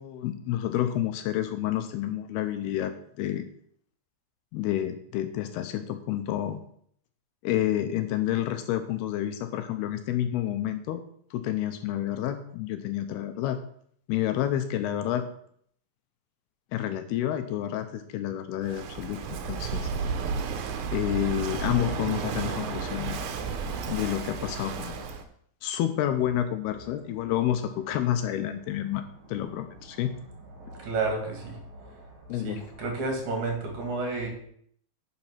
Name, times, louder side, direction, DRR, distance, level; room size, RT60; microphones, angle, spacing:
voice 1, 0.0-3.5 4.5-6.6 7.4-11.0 11.3-13.6 14.1-15.3 16.7-19.2 19.5-19.9 20.9-23.2 23.9-25.1 25.6-30.1 32.3-32.6, left 12 dB, 80° left, 9 dB, 2.4 m, -29 dB
Walk footsteps / Wind / Waves surf, 18.6-25.2, right 5 dB, 70° right, 2.5 m, -32 dB
voice 2, 30.5-34.3, right 3 dB, 50° right, 2 dB, 3.1 m, -32 dB
10.5 x 6.7 x 5.7 m, 0.65 s
omnidirectional pair, 5.2 m